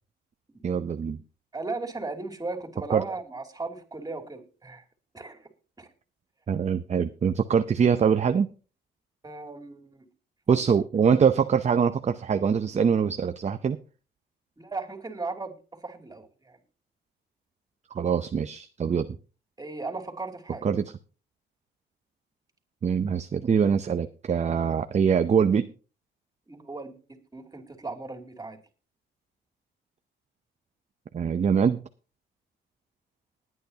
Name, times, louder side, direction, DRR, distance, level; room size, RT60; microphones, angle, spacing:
voice 1, 0.6-1.2 2.9-3.0 6.5-8.5 10.5-13.8 17.9-19.2 20.6-20.9 22.8-25.7 31.1-31.8, right 7 dB, 35° right, 9 dB, 0.6 m, -23 dB
voice 2, 1.5-4.8 5.1-5.5 5.8-5.9 9.2-10.1 10.5-10.6 14.6-16.6 19.6-20.7 26.5-28.6, right 3 dB, 20° right, 4 dB, 2.8 m, -37 dB
20.5 x 9.3 x 2.8 m, 0.36 s
cardioid pair, 90°, 20 cm